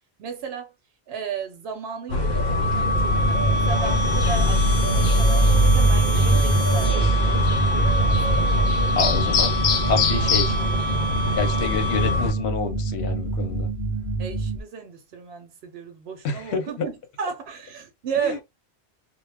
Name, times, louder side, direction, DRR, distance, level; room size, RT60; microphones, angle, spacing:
voice 1, 0.2-0.7 1.1-8.4 14.2-18.4, right 6 dB, 75° right, 0.9 m, -34 dB
sound 1, 2.1-12.3, equal, 60° left, 0.7 m, -22 dB
sound 2, 2.1-12.5, left 1 dB, 30° left, 0.8 m, -28 dB
sound 3, 2.6-14.6, right 3 dB, 50° right, 0.6 m, -28 dB
voice 2, 9.0-9.6 9.9-10.6 11.2-13.7 16.2-16.7 18.2-18.3, left 4 dB, 85° left, 0.9 m, -27 dB
2.2 x 2.0 x 3.2 m
omnidirectional pair, 1.1 m